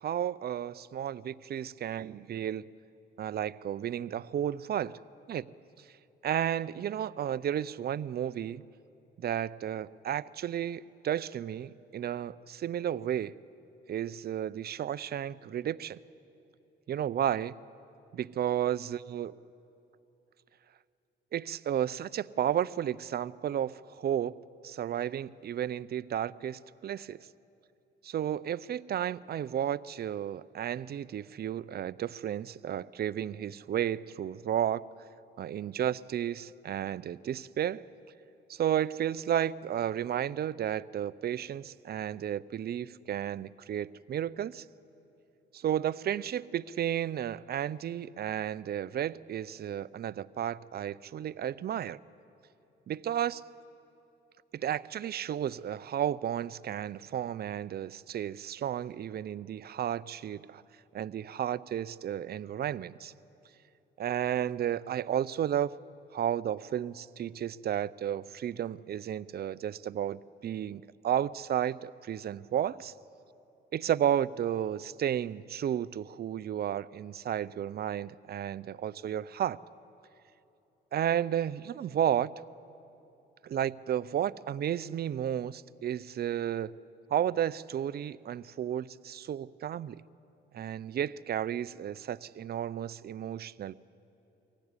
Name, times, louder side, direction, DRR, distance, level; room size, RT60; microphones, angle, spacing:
voice 1, 0.0-2.7 3.2-5.0 5.3-5.5 6.2-8.6 9.2-13.4 13.9-16.0 16.9-17.5 18.1-19.3 21.3-24.3 24.6-27.3 28.0-34.8 35.4-37.8 38.5-44.6 45.5-52.0 52.9-53.4 54.5-60.6 60.9-63.1 64.0-65.7 66.1-72.9 73.7-79.6 80.9-82.3 83.4-86.7 87.1-90.0 90.5-93.7, right 10 dB, 50° right, 17 dB, 0.6 m, -32 dB
24.0 x 16.5 x 9.8 m, 2.9 s
cardioid pair, 90°, 20 cm